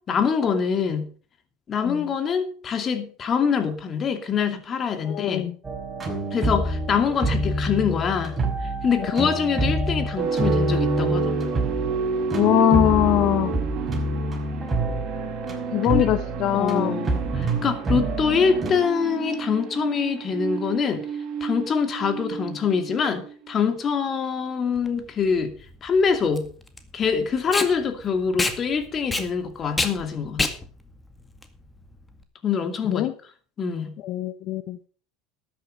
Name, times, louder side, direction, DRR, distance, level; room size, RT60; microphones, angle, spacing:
voice 1, 0.1-1.1 1.7-5.5 6.3-11.4 15.9-16.0 16.5-21.0 21.4-25.5 25.8-26.5 26.9-30.5 32.4-33.1 33.6-33.9, left 6 dB, 35° left, 9 dB, 2.5 m, -24 dB
voice 2, 5.0-5.5 9.0-9.1 12.3-13.6 15.7-17.0 32.9-33.1 34.0-34.8, left 14 dB, 55° left, 12 dB, 0.9 m, -22 dB
sound 1, 5.6-18.7, right 1 dB, 20° right, 5.4 m, -27 dB
sound 2, 10.2-23.5, right 6 dB, 50° right, 3.3 m, -30 dB
Packing tape duct tape, 24.8-32.2, left 3 dB, 15° left, 2.0 m, -29 dB
12.5 x 9.4 x 5.5 m, 0.43 s
hypercardioid pair, 85°, 0 cm